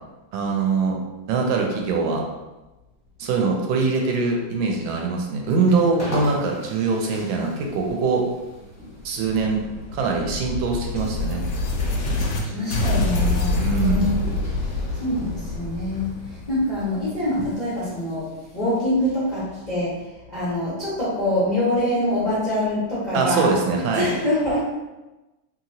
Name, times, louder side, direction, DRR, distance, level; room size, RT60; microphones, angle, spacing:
voice 1, 0.3-1.0 1.3-2.2 3.2-8.2 9.0-9.6 9.9-11.4 13.6-14.1 23.1-24.1, right 4 dB, 80° right, 1 dB, 1.3 m, -23 dB
sound 1, 4.9-20.1, equal, 10° left, 0.8 m, -41 dB
sound 2, 9.0-12.4 12.7-17.4, left 2 dB, 75° left, 1.1 m, -26 dB
voice 2, 12.4-14.2 14.9-18.2 18.5-19.9 20.3-23.5 23.9-24.6, left 1 dB, 45° left, -11 dB, 0.5 m, -24 dB
3.0 x 2.9 x 2.7 m, 1.1 s
omnidirectional pair, 2.2 m